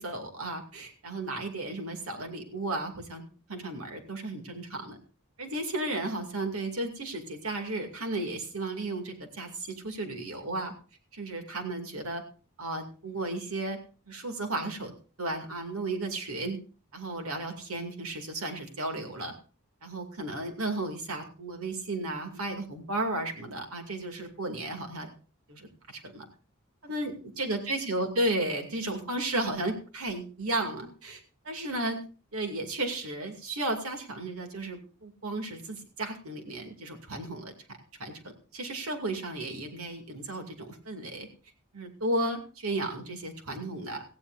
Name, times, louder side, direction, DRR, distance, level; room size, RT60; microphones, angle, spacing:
voice 1, 0.0-5.0 5.4-10.7 11.1-12.2 12.6-13.8 14.1-14.9 15.2-16.6 16.9-19.3 19.8-25.1 25.5-26.3 26.8-32.0 32.3-37.5 38.0-38.2 38.5-41.3 41.7-44.0, right 2 dB, 80° right, 5 dB, 2.5 m, -34 dB
17.5 x 15.0 x 2.6 m, 0.37 s
head